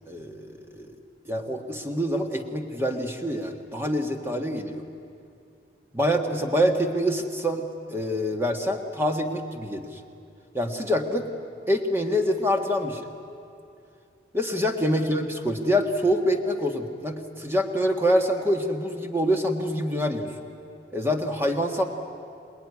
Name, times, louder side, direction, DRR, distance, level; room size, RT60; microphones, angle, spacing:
voice 1, 0.1-1.0 1.2-4.8 5.9-10.0 10.5-11.3 11.7-13.1 14.3-20.3 20.9-21.8, equal, 15° right, 4 dB, 1.6 m, -26 dB
27.0 x 19.0 x 9.7 m, 2.5 s
head